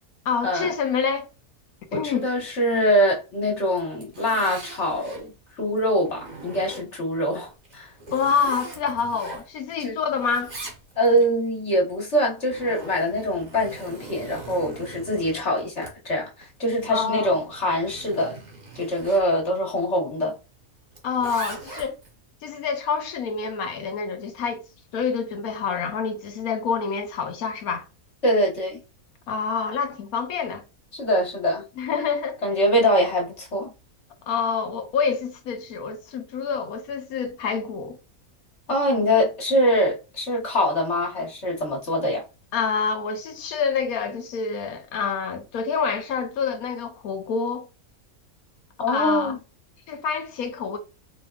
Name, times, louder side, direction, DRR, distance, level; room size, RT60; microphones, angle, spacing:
voice 1, 0.2-1.3 1.9-2.3 8.1-10.5 16.9-17.3 21.0-22.0 22.4-24.6 24.9-27.8 29.3-30.6 31.8-32.4 34.3-38.0 42.5-47.7 48.9-49.4 49.9-50.8, left 6 dB, 80° left, 1.2 m, -27 dB
voice 2, 1.9-7.9 9.8-10.0 11.0-16.3 16.6-18.4 18.7-20.4 28.2-28.8 30.9-31.6 32.4-33.7 38.7-42.2 48.8-49.4, equal, 50° left, 1.6 m, -23 dB
Zipper (clothing), 3.8-5.3 5.8-7.1 7.6-9.8 10.1-11.2 12.1-19.3 20.9-22.1, right 2 dB, 35° right, 1.2 m, -41 dB
4.6 x 3.4 x 2.3 m
omnidirectional pair, 1.5 m